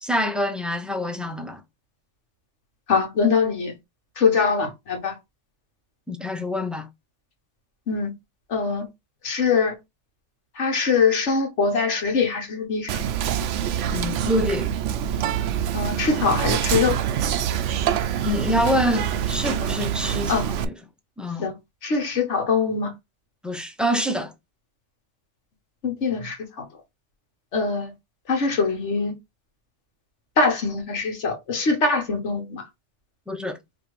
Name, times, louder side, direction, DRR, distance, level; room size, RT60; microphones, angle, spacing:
voice 1, 0.0-1.6 6.1-6.9 13.9-14.7 18.2-20.7 21.2-21.5 23.4-24.3 33.3-33.6, equal, ahead, 0.5 m, -26 dB
voice 2, 2.9-3.7 4.2-5.1 7.9-8.1 8.5-8.8 9.2-9.8 10.6-13.0 15.7-17.0 20.3-20.4 21.4-21.5 21.8-22.9 25.8-26.6 27.5-27.9 28.3-29.1 30.4-32.6, left 4 dB, 70° left, 1.6 m, -23 dB
Whispering, 12.9-20.6, right 9 dB, 80° right, 0.9 m, -25 dB
5.1 x 2.6 x 3.1 m
omnidirectional pair, 1.2 m